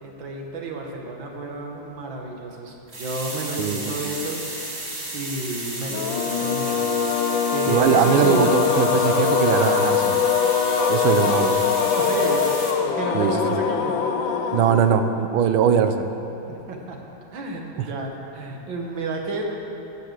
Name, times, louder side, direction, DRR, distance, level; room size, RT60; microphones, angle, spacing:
voice 1, 0.0-7.2 7.5-8.6 12.0-12.5 12.8-14.0 16.5-17.0 17.3-19.5, right 2 dB, 70° right, 1 dB, 1.9 m, -31 dB
sound 1, 2.9-12.7, right 1 dB, 35° right, 1.9 m, -33 dB
sound 2, 5.9-15.3, left 6 dB, 80° left, 1.4 m, -22 dB
voice 2, 7.7-10.2 10.9-11.6 13.1-13.6 14.5-16.0, right 8 dB, 90° right, 8 dB, 1.5 m, -21 dB
13.0 x 7.0 x 6.5 m, 3.0 s
omnidirectional pair, 2.2 m